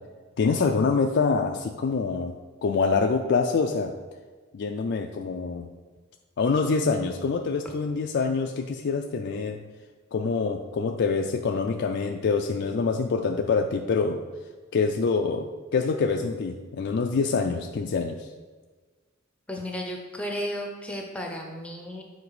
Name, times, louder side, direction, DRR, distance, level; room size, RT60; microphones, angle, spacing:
voice 1, 0.4-2.4 2.6-3.9 4.5-5.7 6.4-9.6 10.1-14.2 14.7-18.3, left 4 dB, 55° left, 3 dB, 0.4 m, -25 dB
voice 2, 19.5-22.0, equal, 5° left, 1 dB, 0.6 m, -33 dB
7.2 x 3.9 x 4.8 m, 1.4 s
head